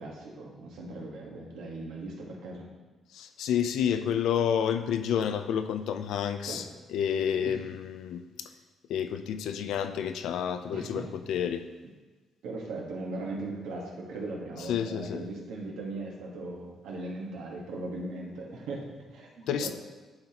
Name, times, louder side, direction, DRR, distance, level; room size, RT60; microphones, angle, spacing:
voice 1, 0.0-2.7 6.5-6.6 7.4-7.6 10.7-11.1 12.4-19.3 19.6-19.7, right 2 dB, 85° right, -1 dB, 1.4 m, -38 dB
voice 2, 3.1-6.6 6.9-8.5 8.9-11.7 14.6-15.2 19.5-19.7, left 8 dB, 80° left, 10 dB, 0.4 m, -29 dB
10.5 x 4.2 x 2.9 m, 1.3 s
cardioid pair, 90°, 0 cm